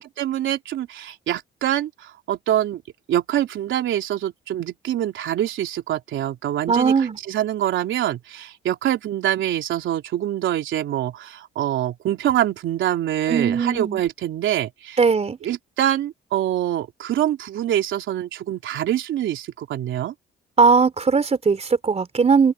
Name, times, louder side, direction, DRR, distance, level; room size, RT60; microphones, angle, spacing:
voice 1, 0.2-2.8 3.1-15.0 15.4-20.1, right 12 dB, 75° right, 3.2 m, -25 dB
voice 2, 6.7-7.2 13.3-14.0 15.0-15.4 20.6-22.5, right 5 dB, 35° right, 3.4 m, -19 dB
open air
cardioid pair, 90°, 20 cm